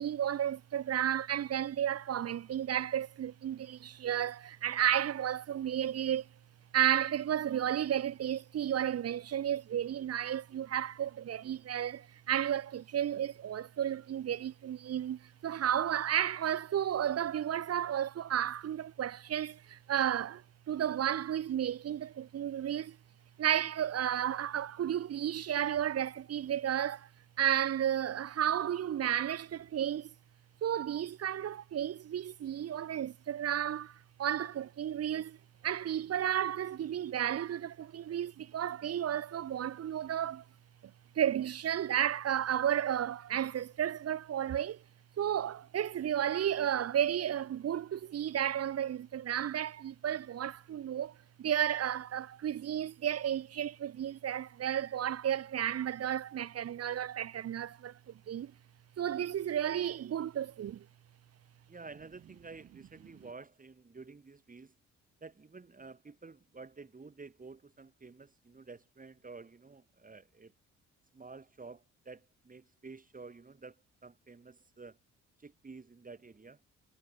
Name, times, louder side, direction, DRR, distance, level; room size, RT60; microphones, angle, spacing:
voice 1, 0.0-6.3 6.7-23.0 23.4-27.1 27.4-30.1 30.6-35.4 35.6-40.4 41.1-44.8 45.2-58.5 59.0-60.9, right 10 dB, 55° right, 1.1 m, -33 dB
voice 2, 61.7-64.7 65.2-70.5 71.1-73.8 74.0-75.0 75.4-76.6, right 4 dB, 25° right, 5.2 m, -51 dB
cardioid pair, 90°, 30 cm